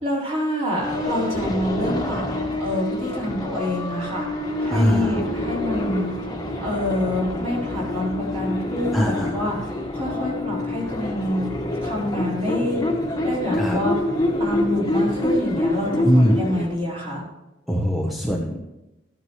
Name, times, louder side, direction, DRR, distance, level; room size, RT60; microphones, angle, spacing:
voice 1, 0.0-2.2 2.6-4.3 4.6-6.1 6.6-9.7 9.9-11.5 11.8-12.8 13.2-13.9 14.4-17.2, left 1 dB, 35° right, -5 dB, 4.0 m, -26 dB
sound 1, 0.8-16.8, left 1 dB, 20° left, 1.4 m, -27 dB
voice 2, 4.7-5.1 8.9-9.5 13.5-13.8 16.0-16.5 17.7-18.6, equal, ahead, -1 dB, 0.9 m, -21 dB
14.0 x 9.3 x 3.1 m, 0.98 s
head